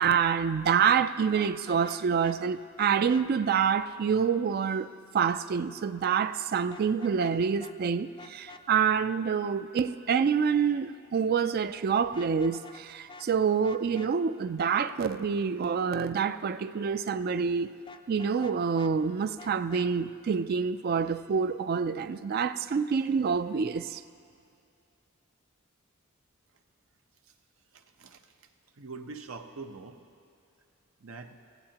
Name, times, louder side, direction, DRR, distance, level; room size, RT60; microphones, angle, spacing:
voice 1, 0.0-4.9 5.1-17.7 18.1-24.0, right 6 dB, 45° right, 0.3 m, -27 dB
Vehicle horn car horn honking, 1.3-2.4 2.8-3.2 6.7-7.3 7.6-7.7 8.2-8.6 12.0-12.8 13.1-13.3 13.6-14.1 17.9-18.9 19.4-19.9, left 3 dB, 25° left, 0.4 m, -47 dB
voice 2, 27.7-28.2 28.8-30.0 31.0-31.4, right 4 dB, 85° right, 0.9 m, -43 dB
20.5 x 14.5 x 2.9 m
head